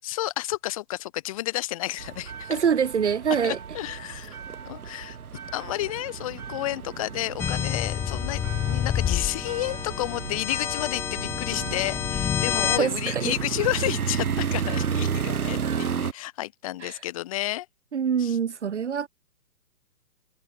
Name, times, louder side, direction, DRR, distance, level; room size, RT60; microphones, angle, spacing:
voice 1, 0.0-2.6 3.4-4.4 4.6-5.2 5.5-17.7 18.2-18.4, left 16 dB, 20° left, 6.9 m, -31 dB
sound 1, 2.0-16.1, right 7 dB, 60° right, 2.3 m, -33 dB
voice 2, 2.5-3.6 12.8-13.3 16.8-17.0 17.9-19.1, right 7 dB, 45° right, 3.2 m, -25 dB
sound 2, 7.4-12.8, left 9 dB, 5° left, 2.2 m, -28 dB
hypercardioid pair, 175°, 50 cm